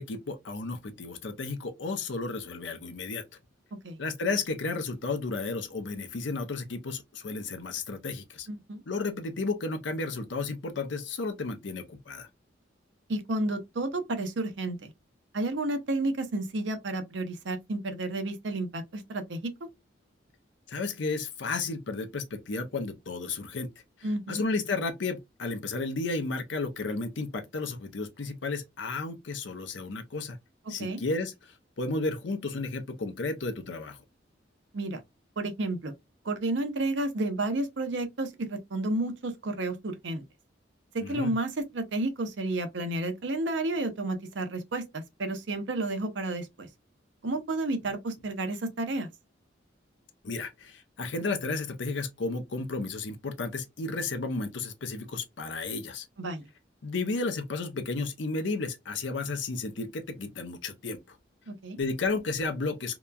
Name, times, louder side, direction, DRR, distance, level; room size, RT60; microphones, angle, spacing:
voice 1, 0.0-3.2 4.0-8.5 8.9-12.3 20.7-23.7 24.3-30.4 30.7-31.3 31.8-34.0 41.0-41.3 50.2-56.1 56.8-61.0 61.8-63.0, left 3 dB, 75° left, 0.6 m, -33 dB
voice 2, 8.5-8.8 13.1-14.9 15.3-19.5 24.0-24.4 30.7-31.0 34.7-35.0 35.4-35.9 36.2-40.2 40.9-46.7 47.2-49.1 56.2-56.4 61.5-61.8, right 2 dB, 75° right, 0.7 m, -31 dB
2.8 x 2.2 x 2.3 m
head